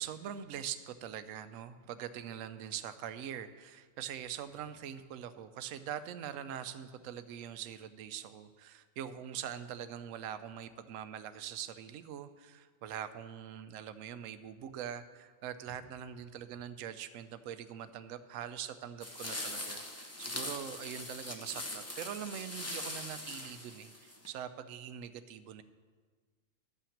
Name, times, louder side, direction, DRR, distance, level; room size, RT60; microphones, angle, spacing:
voice 1, 0.0-25.6, right 9 dB, 75° right, 11 dB, 1.0 m, -43 dB
sound 1, 19.0-24.3, left 1 dB, 15° left, 0.7 m, -41 dB
12.0 x 5.8 x 7.2 m, 1.5 s
omnidirectional pair, 1.4 m